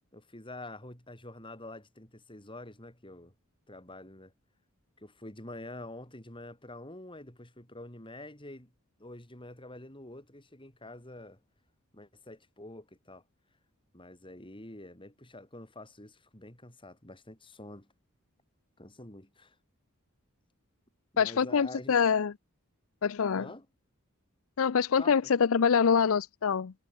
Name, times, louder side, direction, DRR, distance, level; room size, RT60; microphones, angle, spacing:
voice 1, 0.1-3.3 3.7-4.3 5.0-8.7 9.0-11.4 11.9-13.2 13.9-17.9 18.8-19.6 21.1-22.0 23.3-23.7 25.0-25.3, left 1 dB, 25° left, 6.8 m, -47 dB
voice 2, 21.2-22.3 23.0-23.5 24.6-26.7, left 6 dB, 70° left, 0.5 m, -25 dB
head